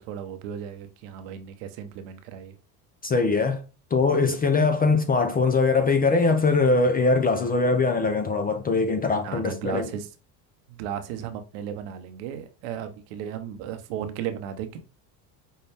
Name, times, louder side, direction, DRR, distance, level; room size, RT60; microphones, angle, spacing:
voice 1, 0.0-2.6 9.2-10.1 10.7-14.8, right 9 dB, 65° right, 0.8 m, -35 dB
voice 2, 3.0-3.6 3.9-9.9, left 3 dB, 20° left, 0.4 m, -22 dB
5.4 x 2.2 x 3.4 m
hypercardioid pair, 80°, 50 cm